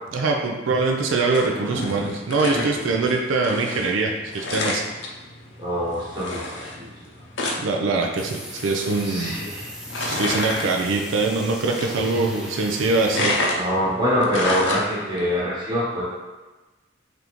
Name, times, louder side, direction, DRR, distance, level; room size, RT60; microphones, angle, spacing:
voice 1, 0.1-4.8 7.6-9.4 10.0-13.3, right 3 dB, 85° right, 1 dB, 0.5 m, -23 dB
sound 1, 0.9-15.3, left 2 dB, 70° left, 0.7 m, -31 dB
voice 2, 5.6-6.9 9.0-9.7 13.5-16.0, equal, 20° right, -9 dB, 1.1 m, -24 dB
sound 2, 8.2-13.1, equal, 5° right, 0.4 m, -39 dB
3.8 x 3.5 x 3.0 m, 1.2 s
head